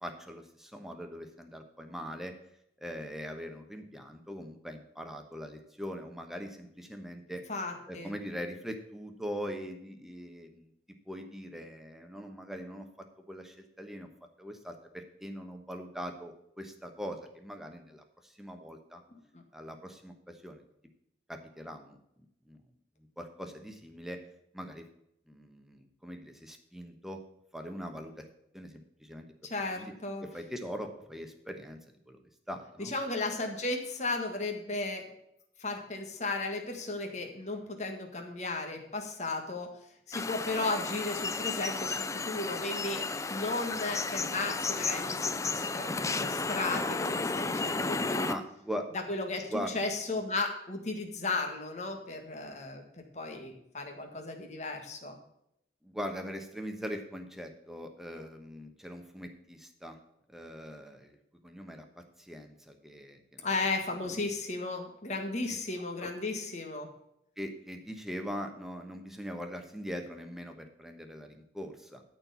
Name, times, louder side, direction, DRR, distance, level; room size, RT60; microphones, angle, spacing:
voice 1, 0.0-2.3 2.8-7.4 7.9-10.7 11.1-14.1 14.4-19.0 19.5-20.6 21.3-22.0 22.4-22.6 23.2-24.2 24.5-24.9 25.3-27.2 27.5-28.2 28.5-29.3 29.8-29.9 30.2-31.8 32.1-32.2 32.5-32.9 48.2-48.9 49.4-49.9 55.8-60.0 60.3-61.2 61.4-63.5 64.0-64.2 65.5-65.6 66.0-66.1 67.4-72.0, equal, ahead, 4 dB, 1.1 m, -41 dB
voice 2, 7.5-8.1 19.3-19.4 29.4-30.2 32.8-35.0 35.6-39.7 40.1-48.3 48.9-49.4 49.7-52.8 53.1-55.2 63.4-66.9, left 3 dB, 40° left, 3 dB, 1.7 m, -35 dB
sound 1, 40.1-48.3, left 3 dB, 20° left, 0.4 m, -33 dB
13.0 x 4.5 x 6.9 m, 0.78 s
head